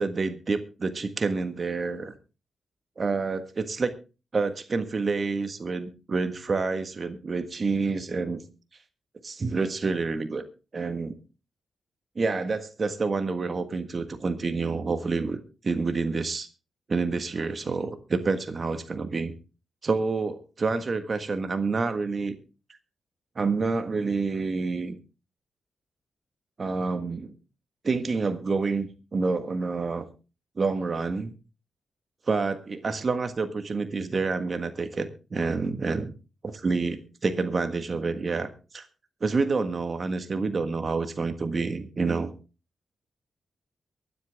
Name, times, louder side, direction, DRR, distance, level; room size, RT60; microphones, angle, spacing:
voice 1, 0.0-2.1 3.0-3.9 4.3-8.4 9.2-10.4 10.7-11.1 12.1-16.5 16.9-19.3 19.8-22.4 23.3-24.9 26.6-27.3 27.8-30.0 30.6-31.3 32.3-36.1 36.4-38.8 39.2-42.3, right 4 dB, 45° right, 9 dB, 1.5 m, -28 dB
23.0 x 8.2 x 3.5 m, 0.32 s
supercardioid pair, 55°, 0 cm